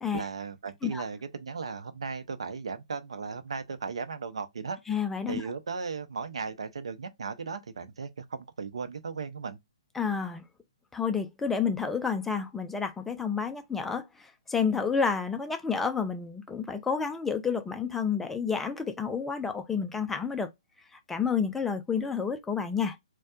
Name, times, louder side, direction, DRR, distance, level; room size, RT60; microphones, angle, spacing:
voice 1, 0.1-4.8 5.3-9.6, right 5 dB, 60° right, 0.6 m, -36 dB
voice 2, 4.9-5.5 9.9-10.4 10.9-20.5 20.9-23.0, left 6 dB, 5° left, 0.4 m, -30 dB
4.2 x 2.2 x 2.4 m
figure-of-eight pair, 125°, 3 cm